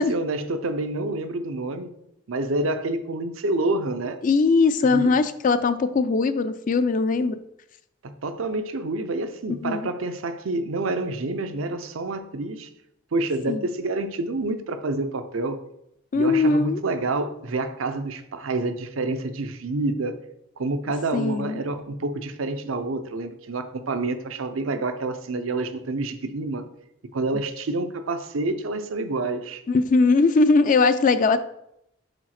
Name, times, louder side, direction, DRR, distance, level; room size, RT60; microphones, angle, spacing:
voice 1, 0.0-1.9 2.3-4.2 4.9-5.1 8.0-12.7 13.1-15.6 16.1-20.2 20.6-26.6 27.1-29.6, right 2 dB, 75° right, 9 dB, 0.6 m, -28 dB
voice 2, 4.2-7.4 9.5-9.9 13.5-13.6 16.1-16.8 21.1-21.6 29.7-31.4, left 4 dB, 40° left, 11 dB, 0.4 m, -20 dB
5.0 x 4.1 x 5.8 m, 0.76 s
head